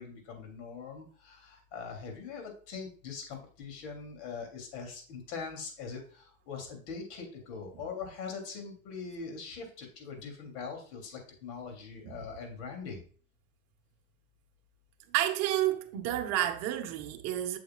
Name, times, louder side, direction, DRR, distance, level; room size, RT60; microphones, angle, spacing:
voice 1, 0.0-13.0, left 5 dB, 55° left, 3.2 m, -42 dB
voice 2, 15.1-17.6, right 13 dB, 40° right, 1.2 m, -30 dB
7.7 x 7.6 x 2.4 m
supercardioid pair, 130°, 39 cm